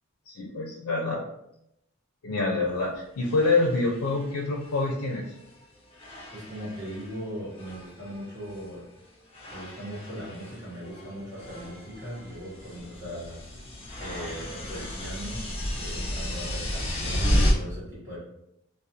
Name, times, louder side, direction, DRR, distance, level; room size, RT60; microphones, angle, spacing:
voice 1, 0.3-1.2 2.2-5.2, left 3 dB, 85° left, -1 dB, 0.4 m, -26 dB
sound 1, 2.6-2.7 3.2-5.6 5.9-7.2 7.5-8.7 9.3-17.5, equal, 25° left, 0.4 m, -33 dB
voice 2, 6.3-8.8 9.5-13.4 14.0-15.5 15.7-18.2, equal, 10° right, -11 dB, 0.9 m, -39 dB
2.3 x 2.0 x 2.7 m, 0.81 s
head